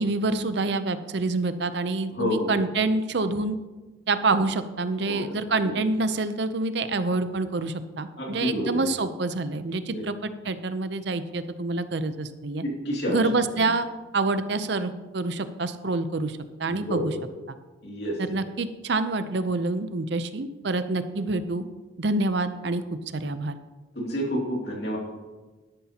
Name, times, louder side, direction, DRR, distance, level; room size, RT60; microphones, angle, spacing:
voice 1, 0.0-3.6 4.1-12.6 13.1-17.1 17.5-17.6 18.2-21.6 22.0-22.8 23.1-23.5, right 3 dB, 60° right, 11 dB, 0.6 m, -27 dB
voice 2, 2.2-2.5 5.1-5.2 5.6-5.7 8.2-8.8 9.9-10.0 12.6-13.2 13.6-13.7 16.7-17.1 17.8-18.2 24.0-25.0, equal, 55° left, -1 dB, 2.6 m, -29 dB
12.5 x 11.5 x 2.9 m, 1.2 s
head